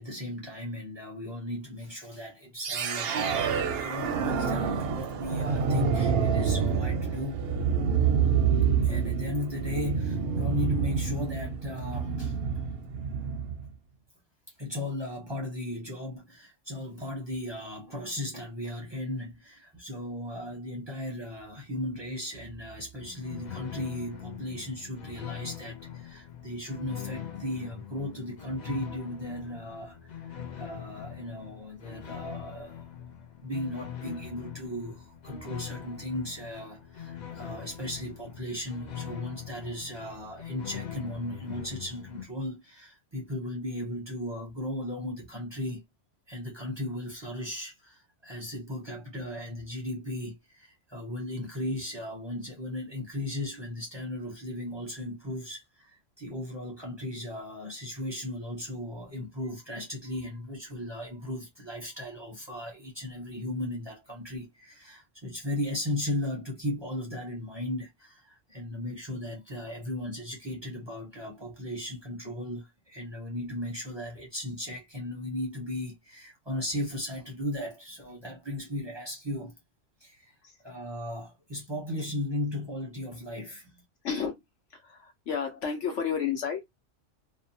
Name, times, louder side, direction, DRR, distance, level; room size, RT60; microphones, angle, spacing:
voice 1, 0.0-7.5 8.8-12.3 13.2-13.3 14.6-32.8 33.4-45.8 46.3-79.6 80.0-80.3 80.6-83.8, left 1 dB, 25° right, 0.6 m, -36 dB
sound 1, 2.6-13.7, right 6 dB, 65° right, 0.7 m, -27 dB
sound 2, 23.0-42.2, left 9 dB, 55° left, 0.4 m, -42 dB
voice 2, 85.3-86.6, left 7 dB, 75° left, 1.1 m, -30 dB
2.6 x 2.1 x 2.6 m
omnidirectional pair, 1.3 m